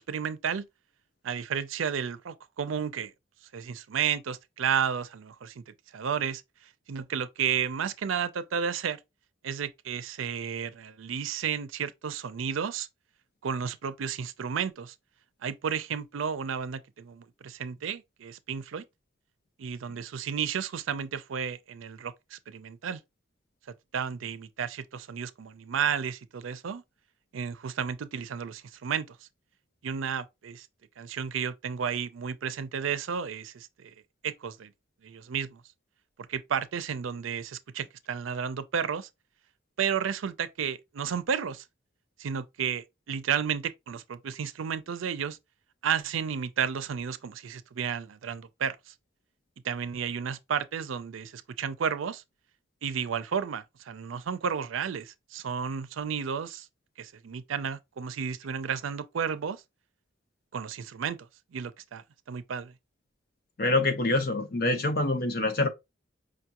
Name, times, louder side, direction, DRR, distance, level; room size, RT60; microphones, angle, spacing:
voice 1, 0.1-0.7 1.2-3.1 3.5-6.4 6.9-9.0 9.4-12.9 13.4-14.9 15.4-18.8 19.6-23.0 23.9-26.8 27.3-29.2 29.8-30.7 31.0-33.9 34.2-34.7 35.0-35.6 36.2-39.1 39.8-41.6 42.2-45.4 45.8-48.9 49.6-52.2 52.8-56.7 57.0-59.6 60.5-61.2 61.5-62.7, right 7 dB, 90° right, 0.4 m, -32 dB
voice 2, 63.6-65.7, left 2 dB, 50° left, 0.7 m, -25 dB
5.0 x 2.4 x 2.8 m
head